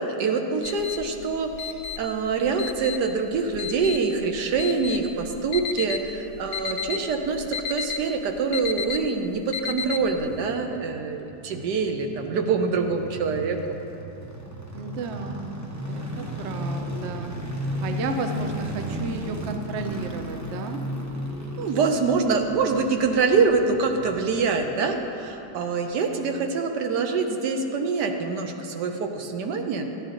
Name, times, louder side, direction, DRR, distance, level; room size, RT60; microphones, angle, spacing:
voice 1, 0.0-13.8 21.6-29.8, right 4 dB, 75° right, 5 dB, 1.4 m, -25 dB
sound 1, 0.6-10.4, left 7 dB, 80° left, 1.2 m, -33 dB
sound 2, 10.0-25.2 25.5-25.6, equal, 20° right, 0.4 m, -35 dB
voice 2, 14.7-15.6 15.9-17.4 17.8-20.8, right 3 dB, 60° right, 5 dB, 0.7 m, -32 dB
13.0 x 9.6 x 3.8 m, 3.0 s
omnidirectional pair, 1.9 m